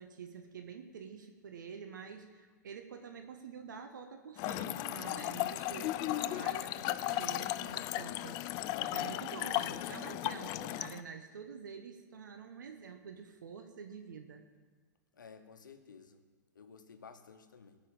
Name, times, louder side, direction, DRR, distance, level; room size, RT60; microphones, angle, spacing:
voice 1, 0.0-8.5 8.8-14.5, right 6 dB, 80° right, 6 dB, 1.0 m, -47 dB
Trickle dribble / Fill (with liquid), 4.4-11.0, left 15 dB, 40° left, 0.4 m, -36 dB
voice 2, 15.2-16.2 16.5-17.8, left 6 dB, 85° left, 8 dB, 1.0 m, -54 dB
16.5 x 5.5 x 7.1 m, 1.4 s
hypercardioid pair, 110°, 10 cm